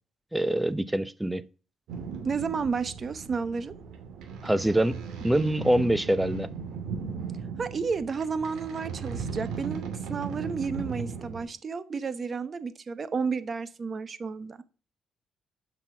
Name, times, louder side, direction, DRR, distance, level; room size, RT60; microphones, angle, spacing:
voice 1, 0.3-1.4 4.4-6.5, right 1 dB, 10° right, 0.6 m, -25 dB
sound 1, 1.9-11.4, right 6 dB, 80° right, 2.6 m, -37 dB
voice 2, 2.2-3.7 7.6-14.6, right 5 dB, 40° right, 1.0 m, -32 dB
8.1 x 5.9 x 6.0 m
cardioid pair, 90°, 0 cm